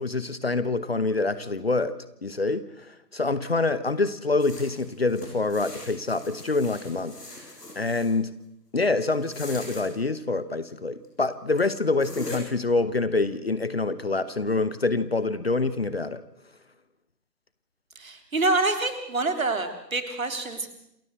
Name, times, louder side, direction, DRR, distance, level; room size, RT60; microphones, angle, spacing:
voice 1, 0.0-1.9 2.2-2.6 3.1-7.2 7.7-8.3 8.7-16.2, left 3 dB, 40° left, 15 dB, 1.0 m, -26 dB
sound 1, 4.4-8.1 9.1-9.9 11.0-11.1 11.6-11.7 12.0-12.4, left 2 dB, 70° left, 6.8 m, -41 dB
voice 2, 18.0-20.7, right 2 dB, 55° right, 8 dB, 3.5 m, -26 dB
27.5 x 14.0 x 8.0 m, 0.81 s
figure-of-eight pair, 150°, 49 cm